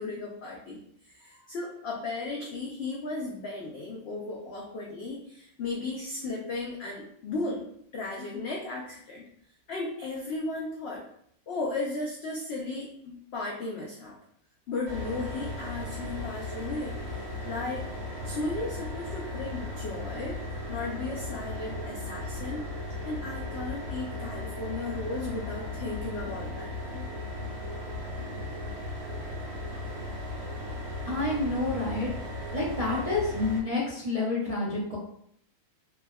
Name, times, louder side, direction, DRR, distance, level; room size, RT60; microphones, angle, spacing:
voice 1, 0.0-7.7 7.9-9.2 9.7-11.0 11.5-14.2 14.7-17.0 17.4-17.9 18.2-20.4 20.7-22.6 23.0-27.0, left 3 dB, 75° left, -3 dB, 0.5 m, -35 dB
sound 1, 14.8-33.6, left 1 dB, 70° right, 1.8 m, -36 dB
voice 2, 31.1-32.1 32.5-35.0, left 2 dB, 50° right, -9 dB, 0.4 m, -29 dB
3.3 x 2.1 x 2.2 m, 0.67 s
omnidirectional pair, 1.6 m